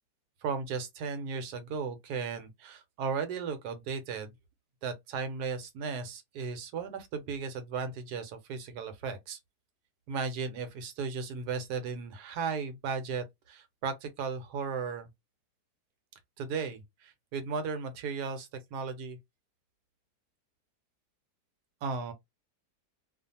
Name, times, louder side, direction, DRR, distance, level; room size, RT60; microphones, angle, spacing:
voice 1, 0.4-4.3 4.8-9.4 10.1-15.1 16.4-19.2 21.8-22.1, right 5 dB, 80° right, 1.2 m, -35 dB
2.5 x 2.4 x 2.6 m
omnidirectional pair, 1.7 m